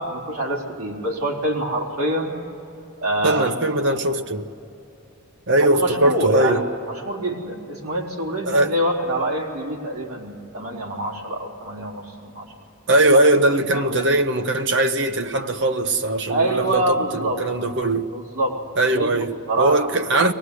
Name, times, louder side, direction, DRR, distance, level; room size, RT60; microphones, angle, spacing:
voice 1, 0.0-2.3 3.0-3.5 5.6-6.6 7.1-12.5 13.7-14.0 16.3-17.4 18.1-18.6 18.9-19.8, right 1 dB, 80° right, 3.7 m, -25 dB
voice 2, 3.2-4.5 5.5-6.7 8.4-8.7 12.9-18.1 18.8-20.3, right 1 dB, 55° right, 0.9 m, -20 dB
23.0 x 19.0 x 9.8 m
head